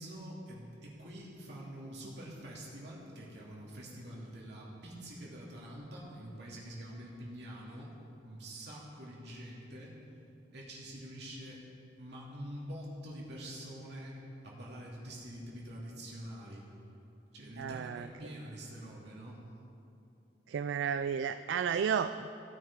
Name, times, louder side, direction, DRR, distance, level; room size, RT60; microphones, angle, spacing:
voice 1, 0.0-7.9 8.2-10.0 10.5-11.6 12.0-16.7 17.3-19.4, equal, 65° right, -5 dB, 2.6 m, -46 dB
voice 2, 17.6-18.1 20.5-22.4, right 7 dB, 85° right, 11 dB, 0.3 m, -32 dB
16.5 x 8.9 x 3.7 m, 2.8 s
head